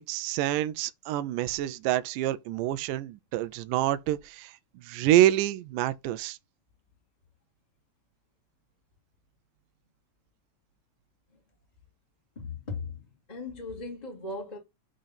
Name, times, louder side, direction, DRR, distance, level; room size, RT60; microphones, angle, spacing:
voice 1, 0.1-6.4, right 13 dB, 80° right, 2.1 m, -27 dB
voice 2, 12.3-14.6, left 3 dB, 15° left, 1.6 m, -38 dB
8.8 x 3.9 x 5.7 m
omnidirectional pair, 4.0 m